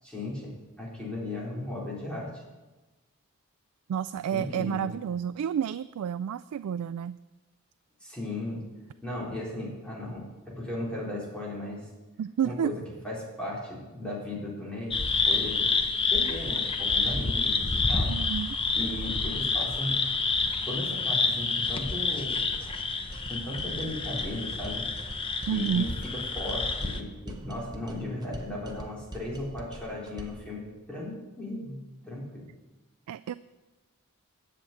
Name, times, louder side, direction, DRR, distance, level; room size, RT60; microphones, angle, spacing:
voice 1, 0.0-2.4 4.3-4.9 8.0-8.6 9.0-10.3 10.6-11.8 12.4-15.0 15.3-15.7 16.1-18.1 18.7-20.0 20.7-22.4 23.3-24.9 25.5-25.9 26.3-31.8 32.1-32.5, left 1 dB, 5° left, -6 dB, 3.8 m, -36 dB
voice 2, 3.9-7.2 12.2-12.7 18.1-18.6 25.5-25.9 33.1-33.3, right 8 dB, 80° right, 14 dB, 0.3 m, -30 dB
sound 1, 14.9-27.0, left 4 dB, 25° left, 0.7 m, -28 dB
sound 2, 23.1-30.5, right 1 dB, 20° right, 0.9 m, -44 dB
10.5 x 7.2 x 8.5 m, 1.2 s
head